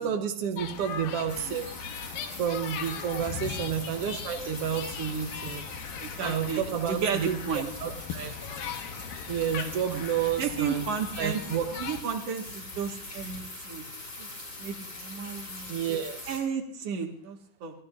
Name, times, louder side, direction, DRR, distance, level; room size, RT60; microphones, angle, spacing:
voice 1, 0.0-1.6 2.4-5.6 6.2-7.4 7.8-8.3 9.3-10.8 11.2-11.7 15.7-16.2, right 8 dB, 70° right, 4 dB, 1.4 m, -30 dB
sound 1, 0.6-12.0, left 7 dB, 75° left, 2.7 m, -39 dB
sound 2, 1.3-16.4, left 2 dB, 30° left, 6.2 m, -43 dB
voice 2, 5.9-7.7 9.5-10.0 10.4-11.4 11.8-13.9 14.2-14.3 14.6-15.7 16.3-17.7, right 6 dB, 50° right, 3 dB, 2.4 m, -33 dB
27.5 x 14.5 x 2.6 m, 0.63 s
omnidirectional pair, 4.1 m